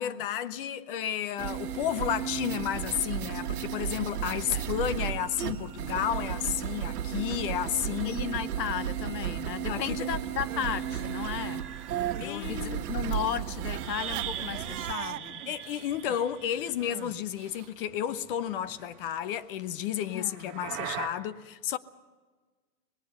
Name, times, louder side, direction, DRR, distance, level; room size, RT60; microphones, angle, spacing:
voice 1, 0.0-8.2 9.7-10.1 12.2-12.9 15.5-21.8, left 10 dB, 35° left, 0.7 m, -32 dB
sound 1, 1.4-14.9, right 10 dB, 65° right, 1.5 m, -34 dB
voice 2, 7.9-11.6 12.2-15.4 20.1-20.6, left 9 dB, 85° left, 0.9 m, -35 dB
Crying sobbing, 10.2-12.4 12.6-17.7, right 13 dB, 50° right, 0.9 m, -44 dB
sound 2, 10.8-17.5 17.7-19.1 20.0-21.1, right 10 dB, 25° right, 1.9 m, -42 dB
24.5 x 19.5 x 5.6 m
hypercardioid pair, 135°, 48 cm